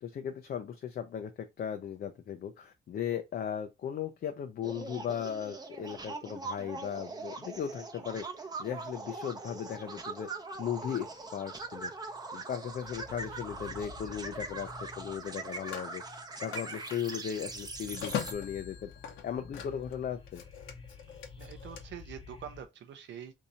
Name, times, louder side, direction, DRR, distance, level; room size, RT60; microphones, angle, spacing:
voice 1, 0.0-10.3 10.6-11.9 12.3-16.0 16.4-18.9 19.2-20.4, left 8 dB, 50° left, 0.5 m, -37 dB
sound 1, 4.6-18.3, right 3 dB, 20° right, 0.7 m, -42 dB
sound 2, 11.5-12.3 12.7-22.6, left 4 dB, 25° left, 1.0 m, -51 dB
Telephone, 12.9-13.2 15.1-20.0 20.3-21.8, left 8 dB, 75° left, 0.9 m, -42 dB
voice 2, 21.4-23.3, right 8 dB, 65° right, 0.6 m, -45 dB
2.8 x 2.6 x 4.1 m
cardioid pair, 90°, 20 cm